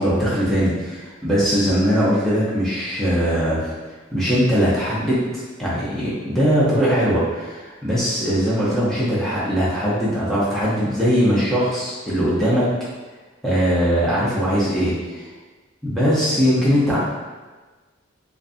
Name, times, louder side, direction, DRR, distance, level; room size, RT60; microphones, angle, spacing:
voice 1, 0.0-3.7 4.1-12.7 13.4-15.3 15.8-17.0, equal, ahead, -9 dB, 0.5 m, -20 dB
2.5 x 2.4 x 2.5 m, 1.3 s
head